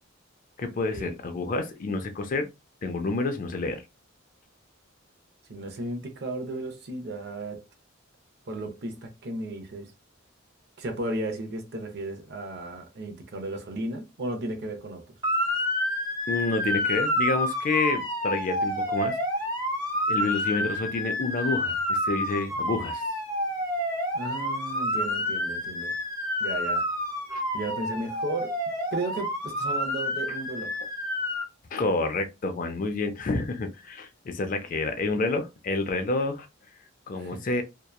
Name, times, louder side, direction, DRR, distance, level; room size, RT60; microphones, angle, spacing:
voice 1, 0.6-2.5 2.8-3.8 16.3-19.2 20.1-23.0 27.3-27.4 31.7-36.5 37.1-37.6, left 3 dB, 40° left, 0.4 m, -29 dB
voice 2, 5.5-7.6 8.5-9.9 10.8-15.1 24.1-25.9 26.4-26.9 27.5-28.5 28.9-30.7 37.2-37.4, right 2 dB, 55° right, 0.6 m, -34 dB
Motor vehicle (road) / Siren, 15.2-31.4, left 1 dB, 15° right, 1.1 m, -29 dB
2.8 x 2.2 x 2.2 m
head